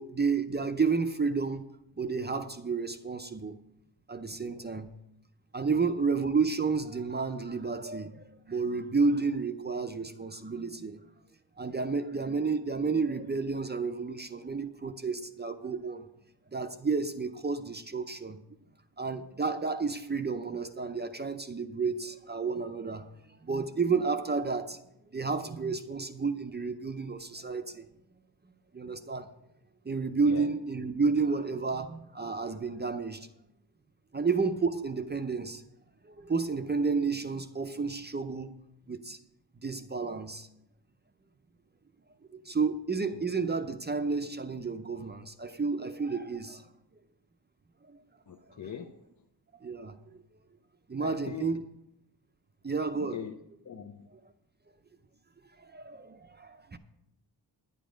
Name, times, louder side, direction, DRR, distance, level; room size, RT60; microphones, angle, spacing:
voice 1, 0.0-1.7 2.0-3.6 4.1-4.9 5.5-11.0 11.6-16.1 16.5-18.4 19.0-23.1 23.4-24.8 25.1-27.9 28.7-29.3 29.8-33.3 34.1-35.6 36.0-38.6 38.9-39.2 39.6-40.5 42.3-46.7 47.9-48.0 48.5-48.6 49.5-50.2 50.9-51.6 52.6-53.2 55.5-56.8, right 4 dB, 25° right, 0.5 m, -31 dB
voice 2, 48.3-49.1 51.0-51.6 53.0-53.4 53.6-54.1, left 8 dB, 45° left, 0.6 m, -42 dB
10.5 x 9.1 x 5.1 m
wide cardioid pair, 130°, 43 cm